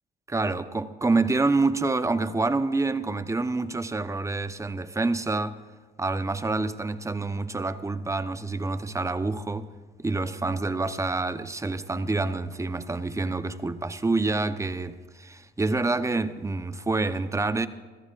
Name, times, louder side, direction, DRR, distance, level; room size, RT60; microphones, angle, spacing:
voice 1, 0.3-5.6 6.0-9.7 10.0-17.7, right 3 dB, 15° right, 0.8 m, -27 dB
26.5 x 14.0 x 2.5 m
supercardioid pair, 60°, 19 cm